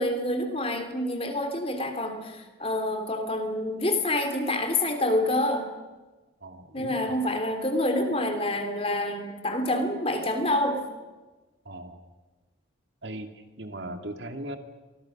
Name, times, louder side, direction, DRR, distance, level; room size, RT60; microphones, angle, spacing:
voice 1, 0.0-5.7 6.7-10.8, left 1 dB, 30° left, 6 dB, 3.1 m, -27 dB
voice 2, 6.4-7.1 11.7-12.0 13.0-13.3 13.6-14.6, right 1 dB, 70° right, 6 dB, 2.5 m, -38 dB
29.5 x 25.0 x 6.1 m, 1.3 s
head